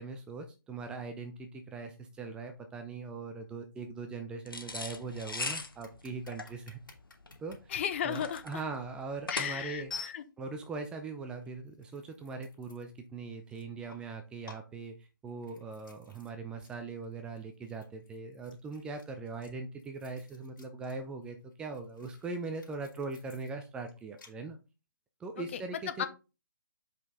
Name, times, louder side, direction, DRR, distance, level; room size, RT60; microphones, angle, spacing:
voice 1, 0.0-6.8 7.4-7.7 8.0-9.9 10.4-24.6 25.2-26.1, right 4 dB, 10° right, 5 dB, 0.4 m, -41 dB
sound 1, 4.5-9.9, left 3 dB, 80° left, 1.1 m, -40 dB
sound 2, 5.8-8.4 9.0-9.1 9.6-10.6 11.4-13.1 13.4-14.1 14.4-16.3 16.6-16.8 17.0-21.0 21.2-24.3, left 5 dB, 65° left, 3.2 m, -51 dB
voice 2, 7.7-8.4 9.3-10.2 25.4-25.6 26.0-26.1, left 9 dB, 35° left, 11 dB, 0.6 m, -34 dB
5.3 x 5.2 x 3.8 m, 0.30 s
figure-of-eight pair, 140°, 11 cm